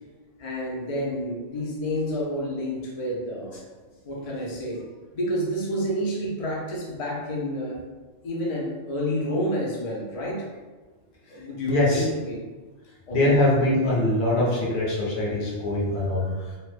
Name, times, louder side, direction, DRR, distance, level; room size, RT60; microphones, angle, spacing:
voice 1, 0.4-3.6 4.0-4.8 5.1-7.8 8.2-10.5 11.3-12.4 13.1-13.3, equal, 45° left, -3 dB, 0.5 m, -29 dB
voice 2, 11.6-12.1 13.1-16.5, left 1 dB, 65° left, -4 dB, 1.0 m, -23 dB
2.9 x 2.1 x 3.2 m, 1.3 s
omnidirectional pair, 1.2 m